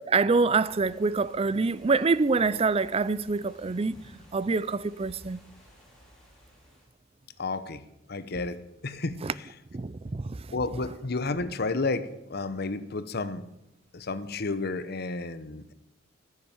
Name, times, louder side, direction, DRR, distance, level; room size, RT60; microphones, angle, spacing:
voice 1, 0.1-5.4 9.2-9.3 9.7-10.4, right 4 dB, 30° right, 0.5 m, -26 dB
sound 1, 0.6-6.9, equal, 5° left, 4.7 m, -55 dB
voice 2, 7.4-7.8 8.1-9.2 10.5-13.4 13.9-15.7, left 3 dB, 55° left, 0.9 m, -31 dB
14.0 x 9.6 x 7.2 m
head